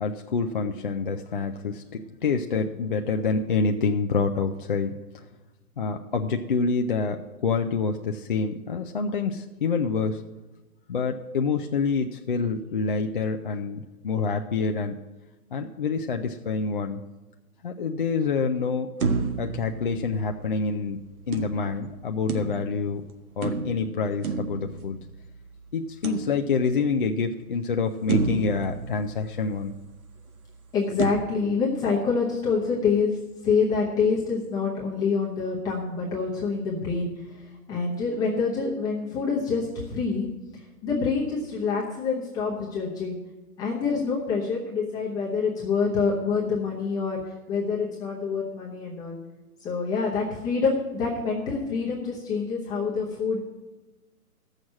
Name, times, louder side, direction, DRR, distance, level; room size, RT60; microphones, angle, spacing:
voice 1, 0.0-5.0 5.8-10.2 10.9-15.0 15.5-17.0 17.6-18.9 19.4-21.0 21.3-23.0 23.4-25.0 25.7-29.7, left 4 dB, 35° left, 4 dB, 0.4 m, -27 dB
sound 1, 19.0-20.6 21.3-22.9 23.4-25.3 26.0-26.9 27.4-27.5 28.1-29.8 31.0-31.1, right 4 dB, 65° right, 1.6 m, -30 dB
voice 2, 30.7-33.2 33.4-40.3 40.5-43.2 43.6-47.2 47.5-49.2 49.6-53.4, left 5 dB, 10° left, -5 dB, 0.8 m, -26 dB
13.5 x 6.4 x 7.3 m, 1.2 s
hypercardioid pair, 150°, 45 cm